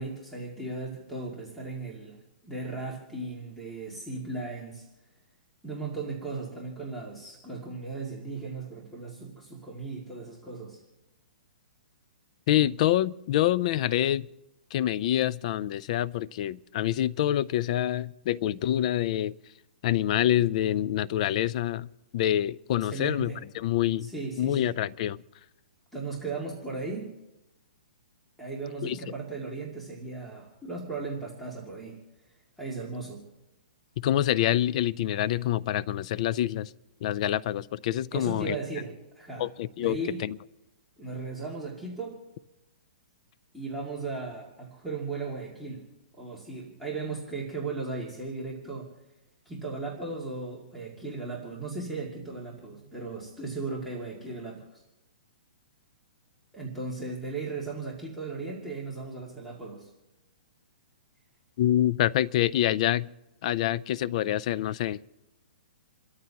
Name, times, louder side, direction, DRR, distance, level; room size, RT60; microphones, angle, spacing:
voice 1, 0.0-2.2 2.4-4.9 5.6-10.8 22.8-23.4 24.0-24.8 25.9-27.1 28.4-32.0 32.6-33.2 38.1-39.5 39.8-40.2 41.0-42.2 43.5-45.9 46.2-48.9 49.5-54.8 56.5-59.9, right 3 dB, ahead, -3 dB, 2.2 m, -36 dB
voice 2, 12.5-14.2 14.7-19.3 19.8-24.1 24.4-25.2 28.8-29.0 34.0-36.7 37.0-38.6 39.4-40.4 61.6-63.1 63.4-65.0, left 12 dB, 45° left, 20 dB, 0.4 m, -26 dB
29.0 x 13.5 x 2.9 m, 0.98 s
hypercardioid pair, 150°, 5 cm